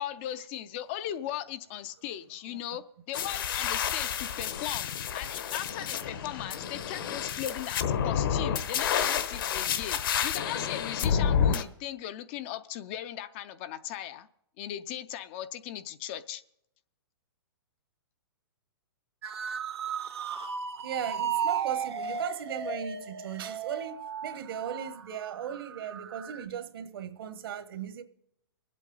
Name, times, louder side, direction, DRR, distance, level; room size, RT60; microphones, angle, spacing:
voice 1, 0.0-14.3 14.6-16.4, left 11 dB, 30° left, 0.4 m, -38 dB
sound 1, 3.1-11.6, left 8 dB, 60° left, 1.0 m, -29 dB
sound 2, 19.2-26.5, right 7 dB, 85° right, 1.5 m, -35 dB
voice 2, 20.8-28.0, right 8 dB, 65° right, 1.2 m, -37 dB
22.5 x 8.3 x 3.9 m
hypercardioid pair, 155°, 13 cm